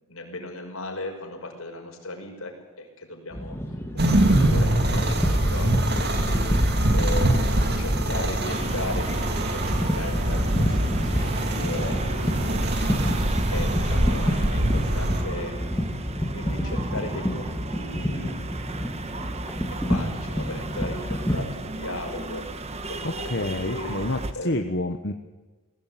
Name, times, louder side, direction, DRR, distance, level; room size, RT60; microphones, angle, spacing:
voice 1, 0.1-3.6 3.9-9.4 9.6-12.5 13.5-16.0 16.3-18.4 19.7-24.0 24.3-24.6, left 2 dB, 75° left, 2 dB, 5.7 m, -37 dB
sound 1, 3.3-21.4, equal, 10° left, 2.1 m, -30 dB
sound 2, 4.0-15.2, right 1 dB, 50° right, 2.5 m, -24 dB
sound 3, 8.5-24.3, right 2 dB, 30° right, 1.3 m, -35 dB
voice 2, 23.0-25.1, left 2 dB, 50° left, 5 dB, 1.2 m, -28 dB
21.0 x 17.0 x 9.3 m, 1.2 s
head